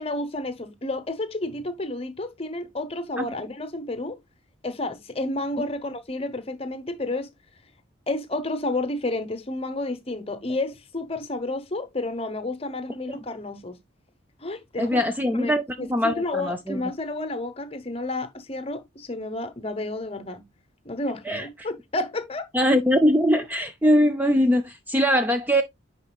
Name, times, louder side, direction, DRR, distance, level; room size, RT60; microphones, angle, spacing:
voice 1, 0.0-4.2 4.6-7.3 8.1-13.8 14.4-15.0 15.3-15.5 15.8-20.4 20.8-22.5, left 2 dB, 30° left, 0.9 m, -31 dB
voice 2, 14.8-16.9 21.3-21.5 22.5-25.6, equal, 10° right, 0.4 m, -22 dB
9.5 x 4.5 x 2.3 m
head